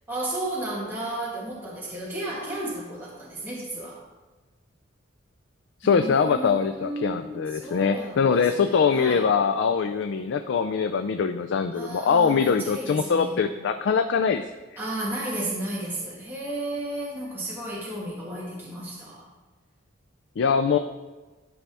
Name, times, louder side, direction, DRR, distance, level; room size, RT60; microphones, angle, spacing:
voice 1, 0.1-4.0 5.8-8.3 8.7-9.2 11.7-13.4 14.8-19.2, right 1 dB, 10° right, -6 dB, 1.6 m, -33 dB
voice 2, 5.8-14.5 20.4-20.8, left 6 dB, 60° left, 8 dB, 0.4 m, -23 dB
11.5 x 5.5 x 3.4 m, 1.2 s
head